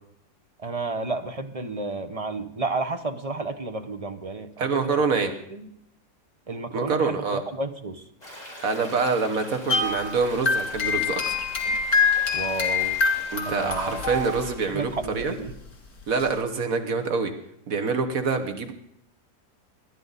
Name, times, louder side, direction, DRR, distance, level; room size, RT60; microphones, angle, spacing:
voice 1, 0.6-5.0 5.5-5.6 6.5-8.0 12.3-13.0 13.5-14.0 14.7-15.5, right 3 dB, 30° right, 8 dB, 0.8 m, -31 dB
voice 2, 4.6-5.3 6.7-7.4 8.6-11.5 13.3-15.3 16.1-17.3 17.7-18.7, right 4 dB, 70° right, 6 dB, 1.6 m, -26 dB
Stream, 8.2-14.5, left 1 dB, 25° left, 5.0 m, -43 dB
sound 1, 9.7-14.7 15.0-15.2 16.2-16.3, left 5 dB, 85° left, 2.8 m, -25 dB
20.0 x 11.5 x 4.1 m, 0.72 s
omnidirectional pair, 1.5 m